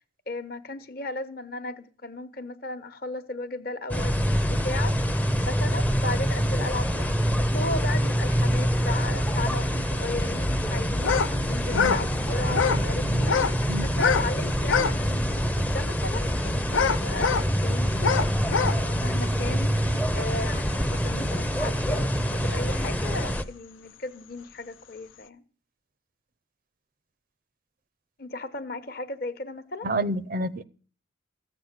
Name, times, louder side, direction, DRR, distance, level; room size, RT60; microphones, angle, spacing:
voice 1, 0.3-18.0 18.4-19.7 20.1-25.4 28.2-29.9, left 2 dB, 50° left, 1.0 m, -36 dB
sound 1, 3.9-23.4, equal, 10° left, 0.6 m, -25 dB
sound 2, 11.0-11.3 11.6-12.0 12.5-12.9 13.2-13.6 13.9-14.3 14.6-15.0 15.5-15.6 16.7-17.5 18.0-18.8, left 6 dB, 80° left, 0.6 m, -24 dB
voice 2, 12.7-13.2 13.7-13.8 29.8-30.6, right 1 dB, 45° right, 0.5 m, -30 dB
14.5 x 7.8 x 7.3 m
head